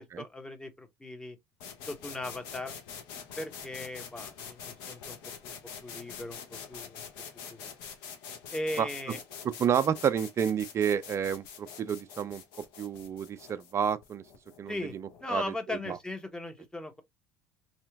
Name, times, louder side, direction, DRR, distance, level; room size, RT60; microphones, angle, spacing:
voice 1, 0.2-1.4 1.8-2.8 3.4-5.2 5.4-5.6 5.8-7.1 7.5-7.7 8.5-9.2 14.7-14.9 15.2-17.0, left 2 dB, 10° left, 0.8 m, -38 dB
sound 1, 1.6-15.3, left 7 dB, 65° left, 0.8 m, -45 dB
voice 2, 9.6-12.4 12.8-14.2 14.6-15.4 15.7-16.0, right 8 dB, 35° right, 0.4 m, -30 dB
2.8 x 2.5 x 2.3 m
figure-of-eight pair, 65°, 8 cm